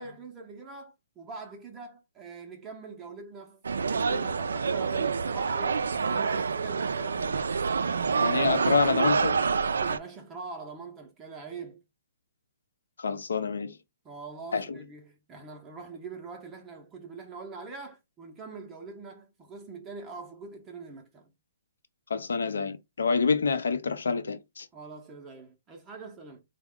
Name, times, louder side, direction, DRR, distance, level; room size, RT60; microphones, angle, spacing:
voice 1, 0.0-7.6 9.7-11.8 14.0-21.3 24.7-26.4, right 4 dB, 20° right, 0.6 m, -43 dB
sound 1, 3.6-10.0, right 5 dB, 85° right, 0.3 m, -27 dB
voice 2, 8.2-9.3 13.0-13.8 14.5-14.8 22.1-24.7, left 5 dB, 80° left, 0.5 m, -27 dB
3.4 x 2.1 x 3.6 m
hypercardioid pair, 145°, 0 cm